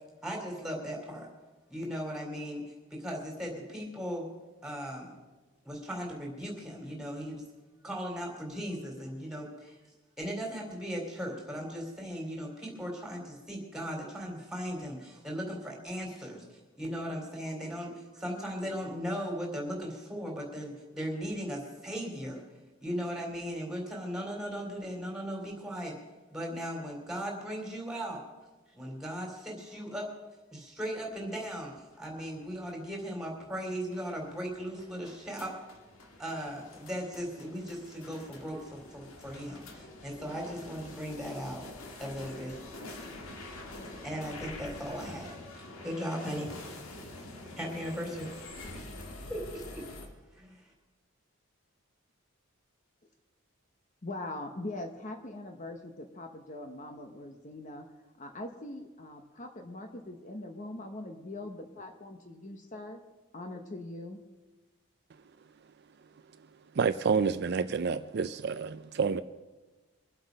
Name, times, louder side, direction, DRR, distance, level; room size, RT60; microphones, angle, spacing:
voice 1, 0.2-1.3 1.7-2.6 2.9-4.3 4.6-5.1 5.6-7.4 7.8-9.8 10.2-22.4 22.8-26.0 26.3-28.2 28.7-30.1 30.5-35.5 36.2-41.6 42.0-42.6 44.0-45.3 45.8-46.5 47.5-48.3 48.7-48.8 49.3-49.8 50.3-50.6, equal, 5° right, 0 dB, 3.4 m, -37 dB
sound 1, 31.5-50.1, left 2 dB, 75° left, 2.1 m, -46 dB
voice 2, 54.0-57.9 58.2-63.0 63.3-64.2, left 2 dB, 35° left, 5 dB, 1.0 m, -42 dB
voice 3, 66.7-69.2, right 5 dB, 50° right, 12 dB, 0.4 m, -29 dB
24.0 x 7.9 x 5.3 m, 1.2 s
head